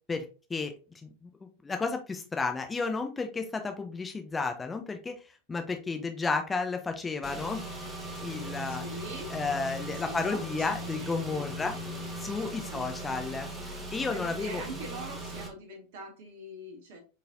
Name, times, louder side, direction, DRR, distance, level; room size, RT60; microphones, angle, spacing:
voice 1, 0.1-0.7 1.0-1.3 1.6-5.1 5.5-7.6 8.2-8.8 9.3-11.8 12.2-13.5 13.9-14.6, left 4 dB, 15° left, 5 dB, 0.5 m, -32 dB
Car / Engine, 7.2-15.5, right 1 dB, 15° right, 1.1 m, -39 dB
voice 2, 8.6-9.3 9.9-11.1 12.2-12.3 12.7-12.9 14.1-17.0, right 2 dB, 55° right, 2 dB, 1.3 m, -43 dB
4.6 x 3.2 x 2.5 m, 0.34 s
figure-of-eight pair, 90°, 0 cm